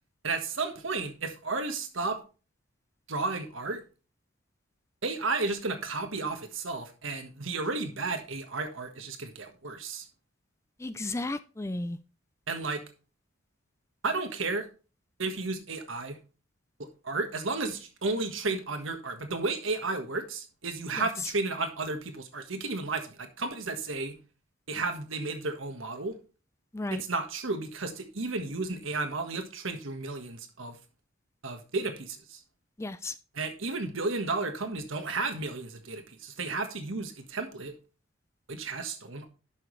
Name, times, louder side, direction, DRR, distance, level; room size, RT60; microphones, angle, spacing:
voice 1, 0.2-2.2 3.1-3.8 5.0-10.1 12.5-12.8 14.0-14.7 15.2-16.2 16.8-24.2 24.7-26.2 26.9-30.8 31.4-32.4 33.3-37.7 38.5-39.3, right 3 dB, 75° right, 1.5 m, -33 dB
voice 2, 10.8-12.0 21.0-21.3 26.7-27.0 32.8-33.2, left 2 dB, 15° left, 0.3 m, -34 dB
11.0 x 6.2 x 3.2 m
head